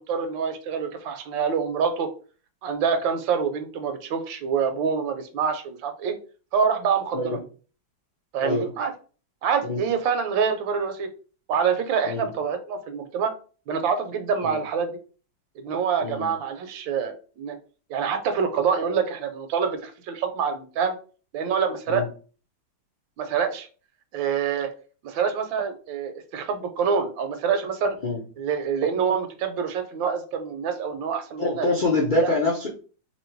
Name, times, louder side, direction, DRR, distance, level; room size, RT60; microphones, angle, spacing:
voice 1, 0.0-2.1 2.6-6.2 6.5-7.4 8.3-8.9 9.4-11.1 11.5-13.3 13.7-15.0 15.6-17.6 17.9-21.0 21.3-22.0 23.2-23.7 24.1-24.7 25.0-28.0 28.4-31.7 32.2-32.3, right 6 dB, 80° right, 8 dB, 1.4 m, -26 dB
voice 2, 31.4-32.7, left 2 dB, 65° left, -2 dB, 0.4 m, -25 dB
3.1 x 2.8 x 4.4 m, 0.38 s
omnidirectional pair, 2.1 m